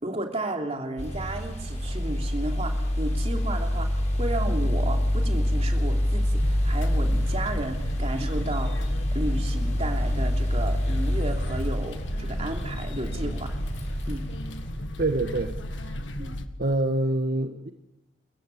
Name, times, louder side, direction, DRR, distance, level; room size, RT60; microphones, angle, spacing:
voice 1, 0.0-8.8 9.1-13.6 14.1-14.2 16.2-16.4, right 1 dB, 35° right, 2 dB, 3.0 m, -33 dB
sound 1, 1.0-14.7, equal, 35° left, 6.3 m, -26 dB
sound 2, 6.4-16.5, left 1 dB, 70° left, 1.7 m, -35 dB
voice 2, 15.0-15.5 16.6-17.7, right 2 dB, 55° right, 6 dB, 1.3 m, -25 dB
29.0 x 15.0 x 8.4 m, 0.99 s
head